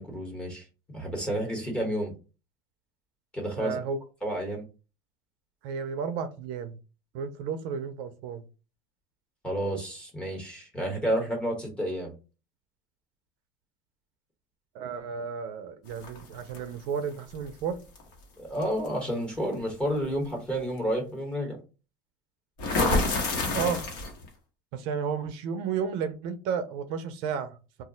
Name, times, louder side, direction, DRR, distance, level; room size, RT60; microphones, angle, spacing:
voice 1, 0.0-2.1 3.3-3.8 4.2-4.7 9.4-12.1 18.4-21.6, equal, 10° left, 0 dB, 0.9 m, -30 dB
voice 2, 3.6-4.0 5.6-6.8 7.1-8.4 14.7-17.8 23.5-23.8 24.7-27.8, right 6 dB, 60° right, 9 dB, 0.4 m, -32 dB
sound 1, 16.0-16.6 18.0-18.1 18.6-18.9 22.6-24.3, left 2 dB, 85° left, 1.1 m, -27 dB
2.3 x 2.0 x 3.7 m, 0.32 s
cardioid pair, 170°, 10 cm